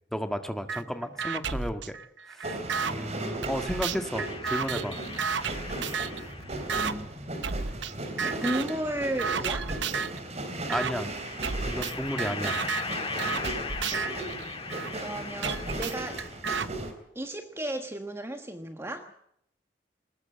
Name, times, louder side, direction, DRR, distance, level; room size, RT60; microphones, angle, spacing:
voice 1, 0.1-2.0 2.3-2.5 2.8-5.0 10.7-11.1 11.7-12.6, equal, ahead, 7 dB, 1.7 m, -33 dB
sound 1, 0.7-0.8 1.2-2.9 3.4-6.2 6.7-6.9 7.4-7.9 8.2-8.8 9.2-10.2 10.7-10.9 11.4-14.9 15.4-16.7, right 6 dB, 85° right, 1.0 m, -32 dB
sound 2, 2.4-16.9, right 2 dB, 35° right, 4.0 m, -37 dB
sound 3, 4.1-6.8 7.9-8.9 10.5-16.5, left 5 dB, 30° left, 2.1 m, -40 dB
voice 2, 6.8-7.1 8.4-9.7 14.8-16.2 17.1-19.1, right 1 dB, 15° right, 6 dB, 1.3 m, -34 dB
21.0 x 20.0 x 7.6 m, 0.71 s
head